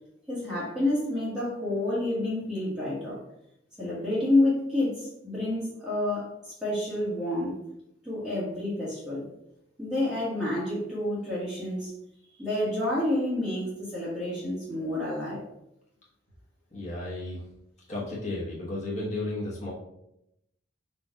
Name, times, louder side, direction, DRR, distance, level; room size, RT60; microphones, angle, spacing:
voice 1, 0.3-3.2 3.8-6.3 6.6-7.5 8.0-9.3 9.8-11.9 12.4-15.4, left 1 dB, 5° right, -9 dB, 1.3 m, -29 dB
voice 2, 16.7-17.4 17.9-19.7, left 2 dB, 35° left, -7 dB, 1.1 m, -33 dB
4.4 x 2.5 x 4.5 m, 0.83 s
head